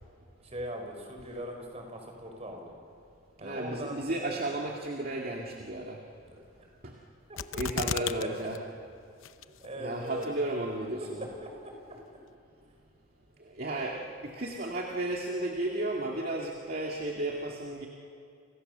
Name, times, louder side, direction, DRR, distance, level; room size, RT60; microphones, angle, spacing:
voice 1, 0.4-2.7 3.4-4.0 6.3-6.7 7.3-7.4 8.2-8.5 9.6-10.3, equal, 30° right, 2 dB, 5.4 m, -40 dB
voice 2, 3.4-6.0 6.8-6.9 7.6-8.6 9.8-11.2 13.4-17.9, right 2 dB, 45° right, -1 dB, 2.3 m, -33 dB
sound 1, 7.4-8.2 8.5-8.6 9.2-9.7 10.2-10.3, left 7 dB, 70° left, 0.8 m, -33 dB
30.0 x 27.5 x 6.9 m, 2.5 s
head